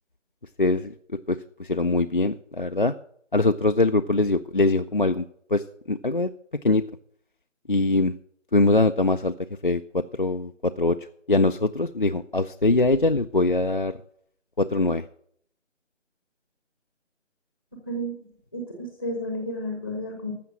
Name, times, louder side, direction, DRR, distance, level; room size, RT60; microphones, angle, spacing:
voice 1, 0.6-2.9 3.3-5.2 5.5-6.3 6.6-6.8 7.7-8.1 8.5-9.3 9.6-13.9 14.6-15.1, left 2 dB, 45° left, 8 dB, 0.4 m, -23 dB
voice 2, 17.7-18.2 18.5-20.3, equal, 10° left, 2 dB, 0.8 m, -32 dB
14.0 x 6.0 x 7.5 m, 0.65 s
figure-of-eight pair, 160°, 37 cm